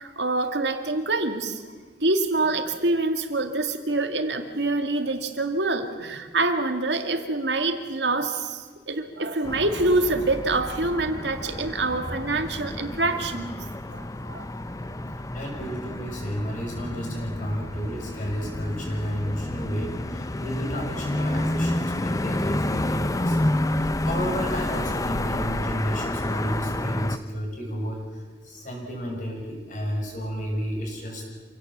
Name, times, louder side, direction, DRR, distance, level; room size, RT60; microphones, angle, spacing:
voice 1, 0.0-1.6 2.0-13.6 13.9-14.5 14.9-15.1, right 2 dB, 80° right, 6 dB, 2.2 m, -26 dB
sound 1, 9.4-27.2, left 1 dB, 20° left, 0.8 m, -29 dB
voice 2, 15.3-31.3, equal, 50° left, 0 dB, 6.3 m, -32 dB
27.5 x 17.5 x 7.3 m, 1.4 s
head